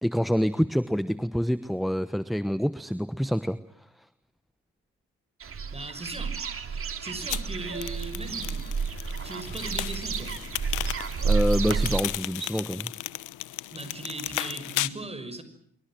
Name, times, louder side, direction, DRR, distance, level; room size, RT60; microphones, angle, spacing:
voice 1, 0.0-3.6 11.2-12.9, equal, ahead, 14 dB, 1.1 m, -27 dB
sound 1, 5.4-12.0, right 5 dB, 45° right, 3.1 m, -30 dB
voice 2, 5.7-8.7 9.2-10.3 13.7-15.4, right 2 dB, 20° right, 11 dB, 6.1 m, -38 dB
sound 2, 7.3-14.9, left 16 dB, 90° left, 1.0 m, -35 dB
26.0 x 24.0 x 7.6 m, 0.65 s
cardioid pair, 90°, 30 cm